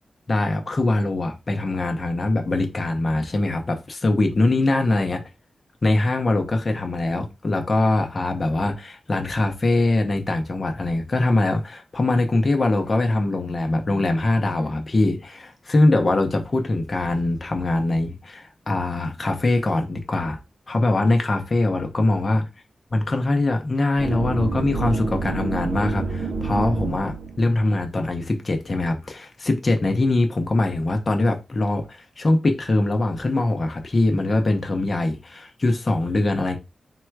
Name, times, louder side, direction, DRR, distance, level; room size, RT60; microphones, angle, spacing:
voice 1, 0.3-5.2 5.8-20.4 20.7-22.5 22.9-36.6, left 2 dB, 35° left, 0.7 m, -22 dB
sound 1, 24.0-27.5, right 4 dB, 55° right, 0.5 m, -28 dB
3.6 x 2.3 x 4.5 m
wide cardioid pair, 100°, 0 cm